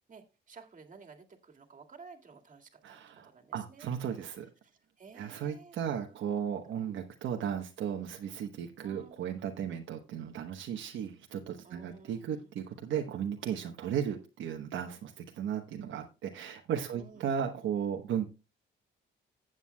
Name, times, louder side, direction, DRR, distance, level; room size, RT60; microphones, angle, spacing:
voice 1, 0.1-3.9 4.6-5.8 6.1-6.4 8.8-9.2 11.6-12.5 16.9-17.3, right 5 dB, 40° right, 2.0 m, -54 dB
voice 2, 2.8-4.5 5.1-18.3, right 8 dB, 75° right, 1.1 m, -35 dB
15.0 x 8.0 x 2.2 m
cardioid pair, 90°, 20 cm